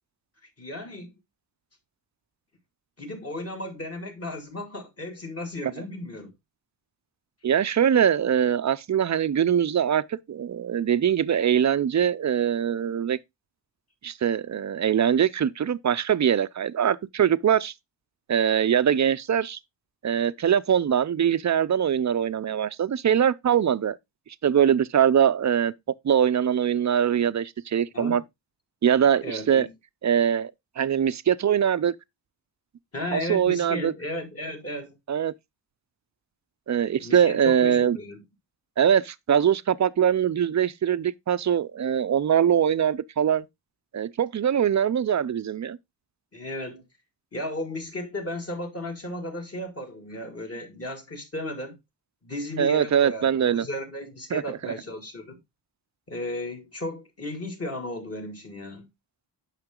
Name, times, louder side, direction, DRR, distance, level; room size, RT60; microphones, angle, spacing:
voice 1, 0.6-1.1 3.0-6.3 27.9-28.2 29.2-29.7 32.9-35.0 37.0-38.2 46.3-46.8 47.3-51.8 52.2-55.4 56.1-58.9, left 1 dB, 35° left, 2.2 m, -35 dB
voice 2, 7.4-13.2 14.0-17.7 18.3-19.6 20.0-24.0 24.4-25.7 26.0-28.2 28.8-29.7 30.0-30.5 30.8-31.9 33.1-33.9 35.1-35.3 36.7-38.0 38.8-43.5 43.9-45.8 52.6-53.7 54.3-54.6, right 9 dB, 40° right, 0.5 m, -22 dB
8.9 x 5.8 x 3.7 m
wide cardioid pair, 130°, 44 cm